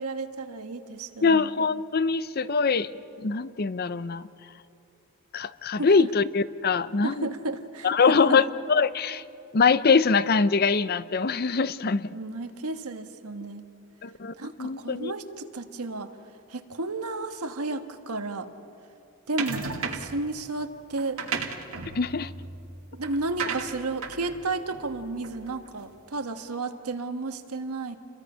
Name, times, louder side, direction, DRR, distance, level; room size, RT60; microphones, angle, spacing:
voice 1, 0.0-1.5 5.8-6.1 7.0-8.4 12.1-13.7 14.4-16.1 16.5-18.5 19.3-21.2 22.9-27.9, right 3 dB, 90° right, 7 dB, 1.4 m, -33 dB
voice 2, 1.2-2.9 3.2-4.3 5.3-7.3 7.8-9.2 9.5-12.1 14.0-15.1 21.9-22.3, left 5 dB, 45° left, 15 dB, 0.6 m, -23 dB
sound 1, 19.4-20.2 21.0-25.7, right 5 dB, 75° right, 1.7 m, -35 dB
29.0 x 22.5 x 5.6 m, 2.6 s
head